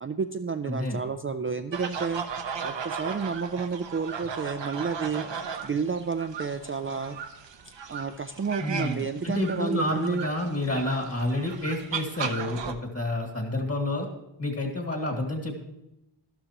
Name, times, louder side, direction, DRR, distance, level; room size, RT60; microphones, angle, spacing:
voice 1, 0.0-2.2 2.6-7.2 7.9-10.3, right 5 dB, 30° right, 7 dB, 0.4 m, -31 dB
voice 2, 0.7-1.0 8.6-14.1 14.4-15.5, left 1 dB, 35° left, 3 dB, 2.1 m, -29 dB
sound 1, 1.7-12.7, right 6 dB, 80° right, 0.8 m, -36 dB
12.5 x 12.0 x 3.0 m, 0.89 s
wide cardioid pair, 85°, 43 cm